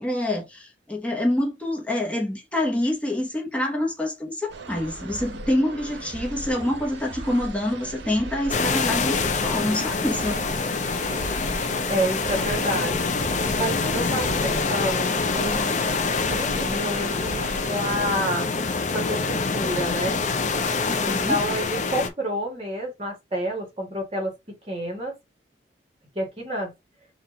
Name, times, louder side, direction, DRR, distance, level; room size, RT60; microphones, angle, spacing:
voice 1, 0.0-10.4 20.9-21.4, left 1 dB, 5° left, 1.1 m, -26 dB
sound 1, 4.5-18.2, right 2 dB, 75° right, 0.7 m, -38 dB
sound 2, 8.5-22.1, left 4 dB, 40° left, 0.6 m, -25 dB
voice 2, 11.9-12.9 13.5-15.1 15.3-15.8 16.3-18.5 18.9-20.2 21.0-24.3 24.7-25.1 26.2-26.7, equal, 30° right, 1.8 m, -29 dB
4.2 x 2.5 x 3.9 m
head